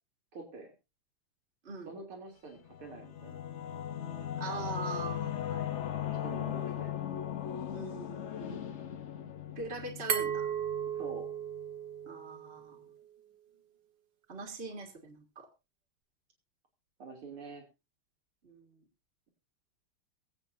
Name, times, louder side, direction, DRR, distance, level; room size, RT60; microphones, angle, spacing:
voice 1, 0.3-0.7 1.9-3.4 6.1-7.0 11.0-11.3 17.0-17.7, right 3 dB, 85° right, 2 dB, 3.7 m, -46 dB
Singing / Musical instrument, 2.6-11.7, left 10 dB, 60° left, 0.7 m, -38 dB
voice 2, 4.4-5.9 7.7-8.6 9.6-10.5 12.0-12.8 14.3-15.5 18.4-18.8, right 4 dB, 30° right, 1 dB, 2.0 m, -42 dB
Glass, 10.1-12.9, right 9 dB, 60° right, 2.0 m, -35 dB
22.5 x 8.2 x 2.7 m, 0.27 s
omnidirectional pair, 2.3 m